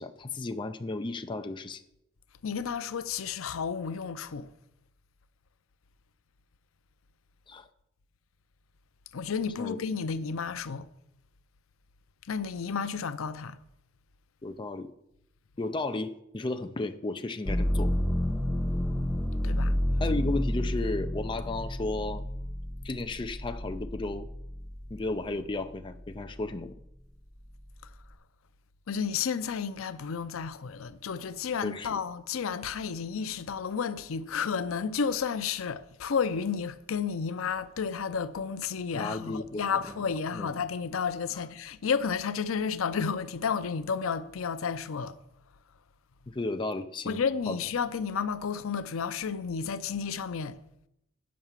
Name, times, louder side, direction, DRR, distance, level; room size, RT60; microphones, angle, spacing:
voice 1, 0.0-1.8 7.5-7.7 9.6-9.8 14.4-14.9 15.6-17.9 20.0-22.2 22.8-24.3 24.9-26.8 31.6-32.0 38.9-39.6 40.3-40.5 41.3-41.4 46.3-47.6, left 2 dB, 25° left, 0.4 m, -34 dB
voice 2, 2.4-4.5 9.1-10.9 12.3-13.6 19.4-19.8 28.9-45.2 47.0-50.6, left 6 dB, 85° left, 0.5 m, -32 dB
sound 1, 17.5-25.3 25.8-26.6, left 1 dB, 5° left, 1.0 m, -30 dB
9.5 x 5.7 x 7.2 m
head